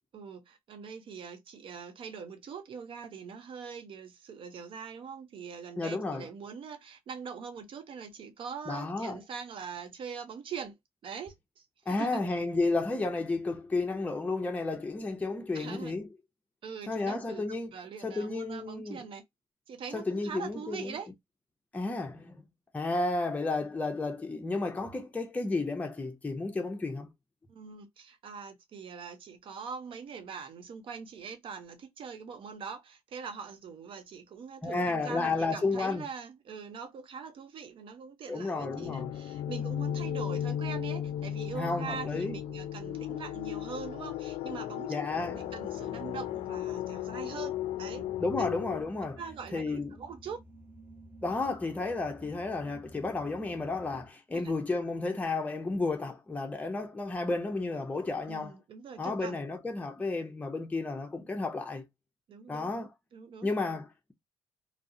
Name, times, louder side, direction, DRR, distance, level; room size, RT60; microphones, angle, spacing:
voice 1, 0.1-10.7 11.0-12.2 15.5-16.0 16.6-17.4 17.7-19.2 19.7-21.1 27.5-44.9 45.3-48.1 48.4-48.5 49.2-50.4 54.3-54.5 58.3-59.4 62.3-63.5, right 6 dB, 55° right, 0.7 m, -43 dB
voice 2, 5.8-6.3 8.7-9.2 11.9-16.1 16.9-17.7 18.0-19.0 19.9-21.0 21.7-22.5 22.7-27.1 34.6-36.1 38.3-39.1 41.5-42.4 44.9-45.4 48.2-49.2 49.5-50.0 51.2-58.5 59.0-61.9 62.5-62.9 63.4-64.1, left 3 dB, 15° left, 0.6 m, -32 dB
sound 1, 38.6-48.8, left 11 dB, 70° left, 0.4 m, -35 dB
sound 2, 45.1-54.1, right 1 dB, 15° right, 1.0 m, -52 dB
2.3 x 2.0 x 2.6 m
supercardioid pair, 70°, 11 cm